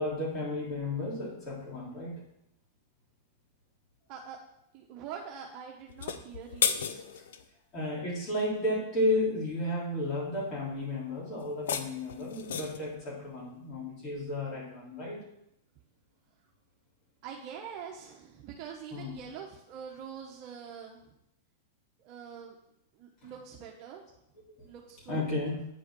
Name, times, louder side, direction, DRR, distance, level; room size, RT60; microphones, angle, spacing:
voice 1, 0.0-2.2 7.1-7.2 7.7-15.2 18.9-19.3 23.2-23.3 24.6-24.7 25.1-25.6, left 1 dB, 40° left, -5 dB, 3.6 m, -33 dB
voice 2, 4.7-7.0 17.2-21.1 22.0-22.6 22.9-24.0 24.7-25.2, right 7 dB, 45° right, 0 dB, 1.1 m, -44 dB
sound 1, 5.9-7.4 11.4-12.9, left 7 dB, 75° left, 0.7 m, -33 dB
9.2 x 4.7 x 6.2 m, 0.80 s
hypercardioid pair, 115°, 0 cm